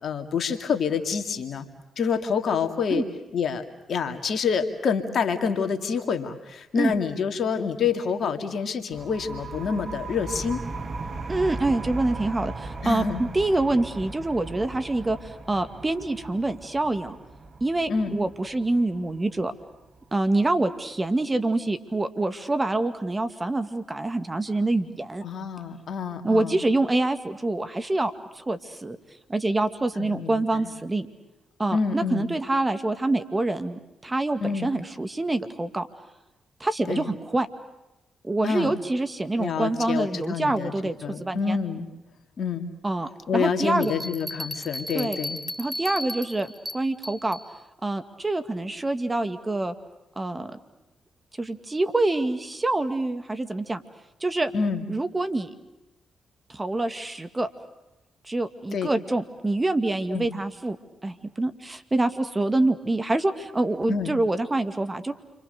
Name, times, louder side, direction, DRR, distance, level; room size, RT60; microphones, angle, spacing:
voice 1, 0.0-1.7 2.0-3.0 3.3-10.6 12.8-13.2 17.9-18.2 25.2-26.6 30.0-30.7 31.7-32.3 34.4-34.7 36.9-37.1 38.4-38.8 39.4-40.7 41.0-41.9 42.4-42.7 43.3-45.4 54.5-54.9 58.7-58.9 60.1-60.3 63.9-64.1, left 6 dB, 65° left, 6 dB, 2.4 m, -27 dB
sound 1, 8.9-20.3, right 3 dB, 50° right, 2.2 m, -38 dB
voice 2, 11.3-17.2 17.6-19.5 20.1-25.2 26.2-29.0 29.3-31.1 31.6-35.9 36.6-37.5 38.2-41.6 42.8-43.9 44.9-45.2 45.6-47.4 47.8-49.7 50.2-50.5 51.4-53.8 54.2-54.5 54.9-55.5 56.5-57.5 58.2-60.8 61.0-65.1, right 2 dB, 25° right, 9 dB, 2.2 m, -26 dB
Bell, 43.8-47.5, left 1 dB, 5° left, 2.1 m, -35 dB
29.5 x 24.5 x 6.8 m, 0.98 s
hypercardioid pair, 45°, 0 cm